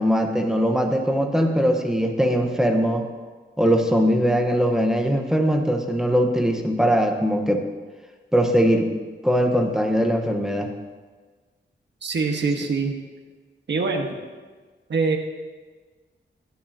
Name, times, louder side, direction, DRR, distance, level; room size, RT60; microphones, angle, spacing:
voice 1, 0.0-3.1 3.6-7.6 8.3-8.9 9.2-10.7, equal, 5° right, 3 dB, 1.0 m, -21 dB
voice 2, 12.0-13.0 13.7-14.1 14.9-15.2, right 4 dB, 65° right, 2 dB, 1.4 m, -23 dB
17.0 x 10.5 x 2.8 m, 1.4 s
wide cardioid pair, 140°, 20 cm